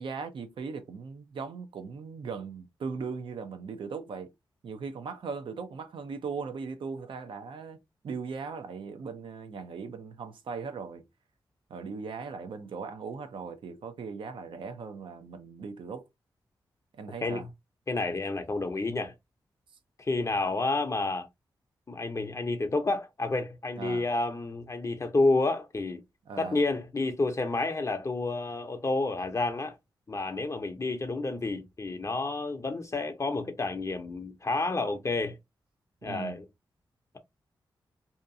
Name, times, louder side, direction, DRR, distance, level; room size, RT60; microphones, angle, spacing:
voice 1, 0.0-4.3 4.6-7.8 8.0-11.0 11.7-16.0 17.0-17.4 23.8-24.1 26.3-26.6 36.0-36.4, right 5 dB, 75° right, 0.6 m, -38 dB
voice 2, 17.9-19.1 20.0-21.3 21.9-26.0 26.4-29.8 30.1-35.4 36.0-36.4, left 2 dB, 35° left, 0.6 m, -30 dB
2.7 x 2.3 x 2.6 m
cardioid pair, 50°, 9 cm